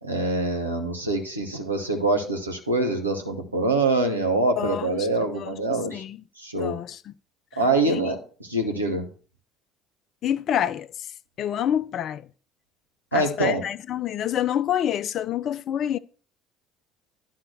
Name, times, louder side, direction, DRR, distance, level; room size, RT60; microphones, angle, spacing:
voice 1, 0.0-6.0 6.4-6.8 7.6-9.1 13.1-13.6, right 2 dB, 90° right, 1.1 m, -25 dB
voice 2, 4.6-5.1 5.4-6.2 6.5-7.1 7.8-8.0 10.2-10.9 11.4-12.2 13.1-16.0, left 10 dB, 50° left, 0.4 m, -27 dB
10.5 x 3.9 x 6.4 m
figure-of-eight pair, 60°, 0 cm